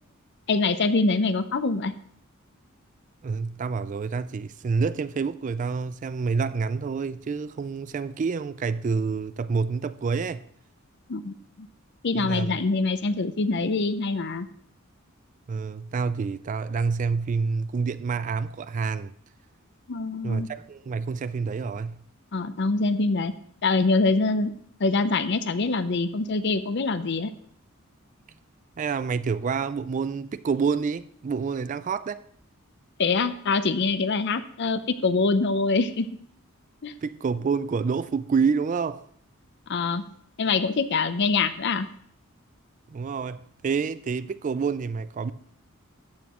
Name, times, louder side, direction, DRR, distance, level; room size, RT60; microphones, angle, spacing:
voice 1, 0.5-1.9 11.1-11.7 12.0-14.5 19.9-20.5 22.3-23.3 23.6-24.5 24.8-27.3 33.0-36.1 36.8-36.9 39.7-40.0 40.4-41.9, left 3 dB, 55° left, 0.6 m, -24 dB
voice 2, 3.2-10.4 12.1-12.6 15.5-19.1 20.2-22.0 28.8-32.3 37.0-39.0 42.9-45.3, right 5 dB, 35° right, 0.3 m, -28 dB
13.5 x 8.5 x 3.0 m
head